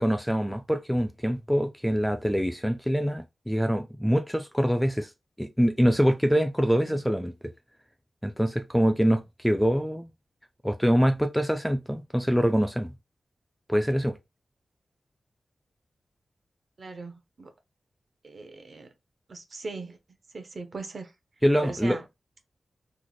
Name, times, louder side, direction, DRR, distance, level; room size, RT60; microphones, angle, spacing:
voice 1, 0.0-5.1 5.4-7.3 8.2-10.1 10.6-12.9 13.7-14.2 21.4-22.0, equal, ahead, 0.3 m, -24 dB
voice 2, 16.8-17.5 18.2-18.9 19.3-20.0 20.3-21.1 21.6-22.0, right 3 dB, 50° right, 0.7 m, -39 dB
3.0 x 2.1 x 3.9 m
wide cardioid pair, 160°, 0 cm